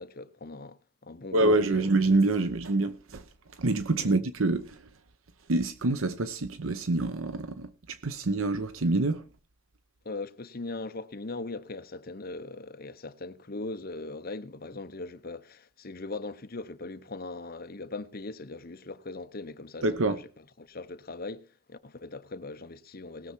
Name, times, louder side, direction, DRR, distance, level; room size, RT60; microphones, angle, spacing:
voice 1, 0.0-1.9 4.0-4.1 10.0-20.3 20.6-23.3, left 3 dB, 45° left, 0.9 m, -40 dB
voice 2, 1.3-3.2 3.6-4.8 5.5-9.2 19.8-20.2, right 2 dB, 80° right, 0.9 m, -26 dB
20.0 x 7.0 x 4.5 m
head